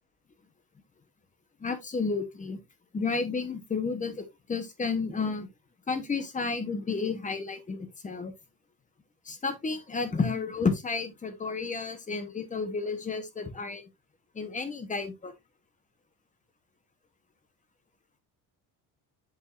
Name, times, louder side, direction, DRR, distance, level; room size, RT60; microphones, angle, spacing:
voice 1, 1.6-2.6 2.9-5.5 5.9-8.3 9.2-13.9 14.3-15.3, left 4 dB, 20° left, 1.0 m, -31 dB
8.3 x 5.3 x 2.5 m
cardioid pair, 160°, 41 cm